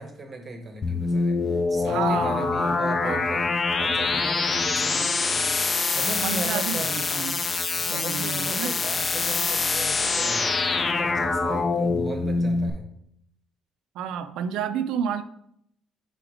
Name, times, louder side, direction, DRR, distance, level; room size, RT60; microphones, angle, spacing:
voice 1, 0.0-1.4 1.7-3.5 3.8-5.6 5.9-6.9 7.8-12.8, right 2 dB, 25° right, 4 dB, 0.8 m, -37 dB
sound 1, 0.8-12.7, left 4 dB, 20° left, 0.3 m, -25 dB
voice 2, 1.9-3.3 6.2-7.4 7.9-8.8 13.9-15.2, right 8 dB, 85° right, 11 dB, 0.4 m, -31 dB
5.0 x 3.8 x 4.9 m, 0.71 s
cardioid pair, 180°, 0 cm